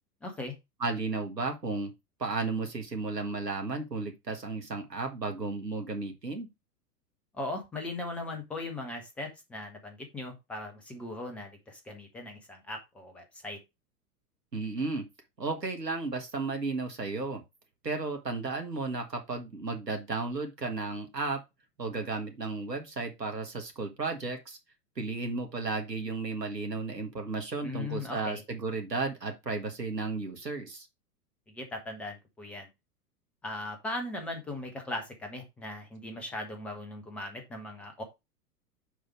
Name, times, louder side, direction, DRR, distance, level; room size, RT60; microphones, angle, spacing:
voice 1, 0.2-0.5 7.3-13.6 27.6-28.4 31.5-32.7 33.4-38.0, left 2 dB, 5° left, 0.4 m, -39 dB
voice 2, 0.8-1.9 2.2-6.5 14.5-15.0 15.4-17.4 17.8-21.4 21.8-24.6 25.0-30.9, right 3 dB, 85° right, 1.6 m, -34 dB
6.7 x 4.7 x 4.5 m
figure-of-eight pair, 100°, 48 cm